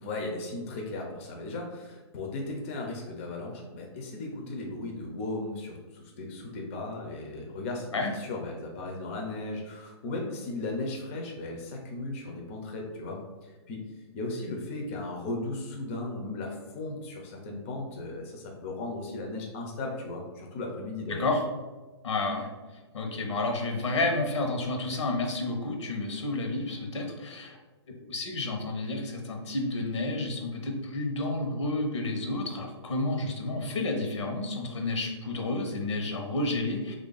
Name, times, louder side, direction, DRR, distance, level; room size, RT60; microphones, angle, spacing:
voice 1, 0.0-13.8 14.1-21.3, left 2 dB, 30° left, 0 dB, 0.5 m, -36 dB
voice 2, 21.1-21.4 22.0-22.5 22.9-27.6 28.1-36.9, left 2 dB, 90° left, 2 dB, 0.9 m, -30 dB
3.2 x 2.5 x 3.9 m, 1.2 s
hypercardioid pair, 160°, 15 cm